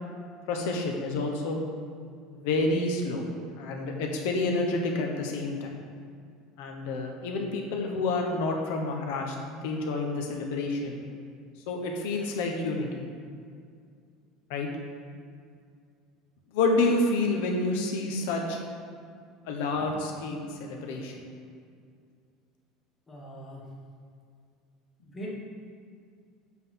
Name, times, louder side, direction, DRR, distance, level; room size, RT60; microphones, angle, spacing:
voice 1, 0.5-1.6 2.3-3.2 3.6-5.7 6.6-11.0 11.7-13.0 14.5-14.7 16.5-18.6 19.4-21.2, left 2 dB, 75° left, 1 dB, 1.0 m, -29 dB
voice 2, 23.1-23.6 25.0-25.3, equal, 10° left, -4 dB, 1.2 m, -40 dB
7.5 x 3.9 x 5.8 m, 2.2 s
cardioid pair, 170°, 0 cm